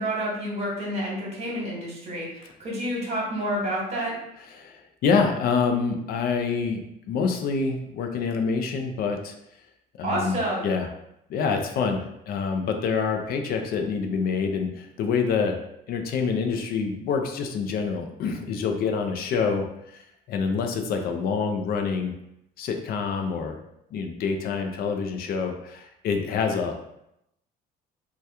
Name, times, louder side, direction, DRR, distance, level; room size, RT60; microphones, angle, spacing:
voice 1, 0.0-4.1 10.0-10.7, right 1 dB, 40° right, -3 dB, 1.2 m, -29 dB
voice 2, 4.5-6.8 7.1-9.4 10.0-10.4 10.6-10.9 11.3-15.6 15.9-19.7 19.9-22.1 22.6-23.6 23.9-26.8, left 5 dB, 65° left, 5 dB, 0.4 m, -26 dB
2.8 x 2.2 x 3.4 m, 0.81 s
cardioid pair, 110°, 17 cm